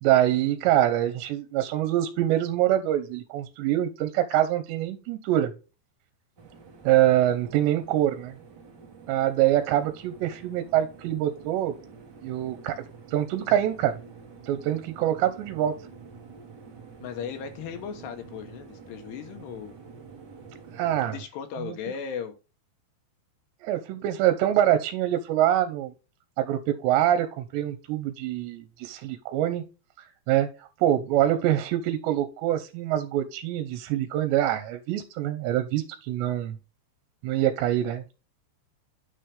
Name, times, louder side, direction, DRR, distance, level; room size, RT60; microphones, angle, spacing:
voice 1, 0.0-5.5 6.8-8.3 9.1-11.8 12.2-12.8 13.1-14.0 14.4-15.8 20.7-21.2 21.6-21.8 23.6-25.9 26.4-29.6 30.3-36.6 37.2-38.0, right 12 dB, 85° right, 3.0 m, -25 dB
sound 1, 6.4-21.2, right 5 dB, 50° right, 1.2 m, -48 dB
voice 2, 17.0-19.8 21.1-22.4, left 7 dB, 75° left, 3.1 m, -36 dB
9.2 x 5.7 x 3.4 m
omnidirectional pair, 5.1 m